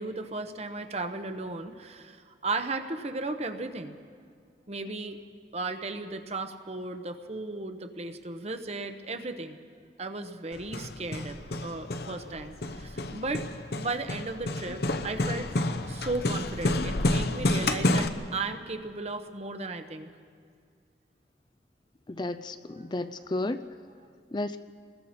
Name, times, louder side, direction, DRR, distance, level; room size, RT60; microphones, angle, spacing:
voice 1, 0.0-4.0 4.7-5.2 5.5-9.6 10.0-13.4 13.8-20.1, right 3 dB, 35° right, 8 dB, 1.0 m, -35 dB
Hammer, 10.5-18.1, left 2 dB, 60° left, 0.9 m, -30 dB
voice 2, 22.1-23.6 24.3-24.6, left 2 dB, 25° left, 10 dB, 0.4 m, -32 dB
29.5 x 21.0 x 4.4 m, 2.2 s
head